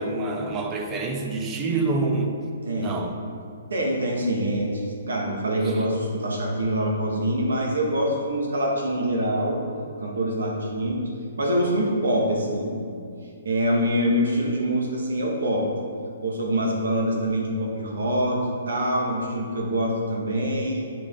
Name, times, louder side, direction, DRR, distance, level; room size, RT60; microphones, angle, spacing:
voice 1, 0.0-2.4 2.8-3.2 5.6-5.7, right 3 dB, 15° right, 3 dB, 0.5 m, -27 dB
voice 2, 2.6-3.0 3.7-9.6 10.0-11.1 11.4-12.9 13.4-15.7 16.2-20.9, equal, 85° right, -1 dB, 1.6 m, -25 dB
9.2 x 5.0 x 3.7 m, 2.4 s
hypercardioid pair, 165°, 0 cm